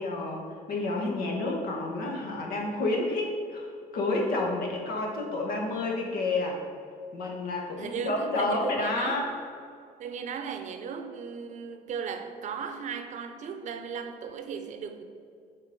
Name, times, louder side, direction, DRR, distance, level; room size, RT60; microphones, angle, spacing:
voice 1, 0.0-6.6 7.1-9.4, left 2 dB, 70° left, 0 dB, 1.5 m, -30 dB
voice 2, 7.8-9.2 10.0-15.0, right 6 dB, 50° right, 8 dB, 0.7 m, -36 dB
7.3 x 4.0 x 5.4 m, 2.3 s
cardioid pair, 130°, 16 cm